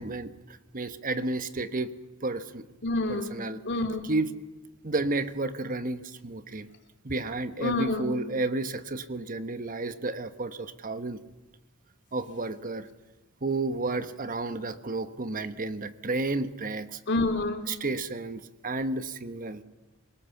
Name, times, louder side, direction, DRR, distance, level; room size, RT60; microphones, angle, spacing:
voice 1, 0.0-1.9 2.2-2.6 3.1-3.6 4.0-4.3 4.8-6.7 7.0-11.2 12.1-12.9 13.4-17.0 17.7-19.6, right 2 dB, 40° right, 11 dB, 1.2 m, -31 dB
voice 2, 2.8-3.3 3.6-4.0 7.6-8.1 17.1-17.7, left 2 dB, 55° left, 6 dB, 3.1 m, -28 dB
27.5 x 19.0 x 7.2 m, 1.1 s
head